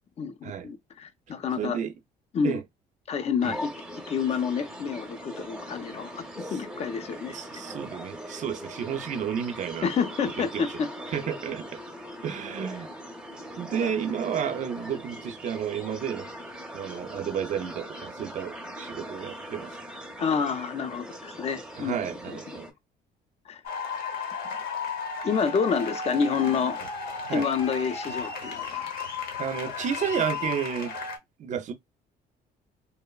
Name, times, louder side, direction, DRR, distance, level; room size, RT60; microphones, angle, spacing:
voice 1, 0.2-1.8 2.3-2.6 3.1-7.4 9.8-10.9 13.7-13.9 20.2-22.0 22.3-22.6 23.5-23.6 25.2-26.8 27.3-28.9, left 6 dB, 40° left, 0.5 m, -29 dB
voice 2, 1.6-1.9 2.4-2.6 3.4-3.6 6.4-6.6 7.3-9.9 10.4-10.7 11.1-11.8 12.2-12.9 13.6-16.3 16.7-19.8 21.8-22.7 27.3-27.5 29.4-30.9 31.4-31.7, right 8 dB, 45° right, 0.5 m, -31 dB
sound 1, 3.4-22.7, equal, 5° right, 0.6 m, -41 dB
sound 2, 23.6-31.2, left 5 dB, 65° left, 0.8 m, -34 dB
2.9 x 2.0 x 2.2 m
cardioid pair, 110°, 17 cm